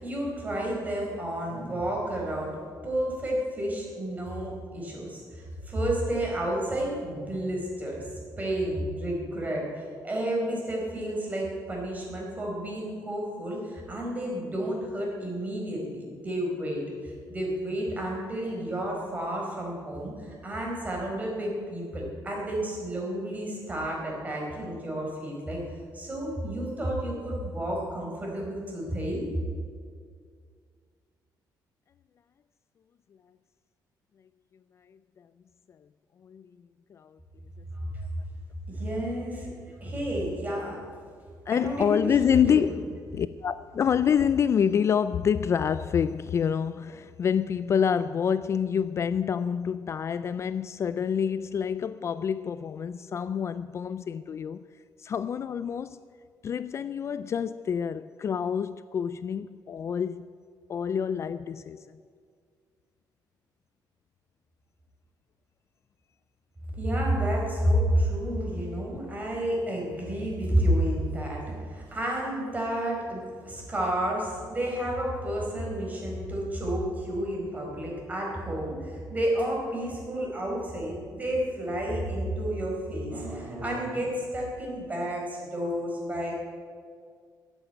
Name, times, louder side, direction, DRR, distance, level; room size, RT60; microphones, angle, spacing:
voice 1, 0.0-25.6 25.9-29.3 37.7-38.0 38.7-40.8 41.5-42.7 66.8-86.3, right 1 dB, 20° right, 4.5 m, -31 dB
voice 2, 41.5-42.7 43.1-54.6 55.0-56.0 56.4-60.3 60.7-62.0, left 7 dB, 40° left, 0.3 m, -27 dB
14.0 x 8.2 x 9.0 m
cardioid pair, 140°, 8 cm